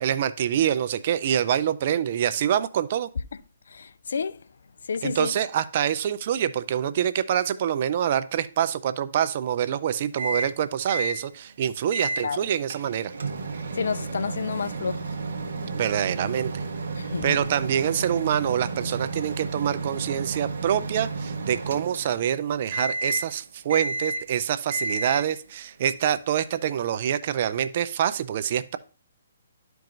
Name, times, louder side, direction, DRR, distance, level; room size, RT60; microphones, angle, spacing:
voice 1, 0.0-3.1 5.0-13.1 15.7-16.5 17.2-28.8, right 9 dB, 45° right, 0.5 m, -26 dB
voice 2, 3.7-4.4 4.9-5.3 12.2-12.4 13.7-15.1 17.0-17.4, left 5 dB, 70° left, 0.4 m, -29 dB
Microwave oven, 10.2-10.6 10.9-11.2 11.9-12.3 12.7-22.3 22.7-23.3 23.7-24.3 24.7-25.3, right 3 dB, 65° right, 1.1 m, -32 dB
11.5 x 4.6 x 2.6 m
hypercardioid pair, 140°, 0 cm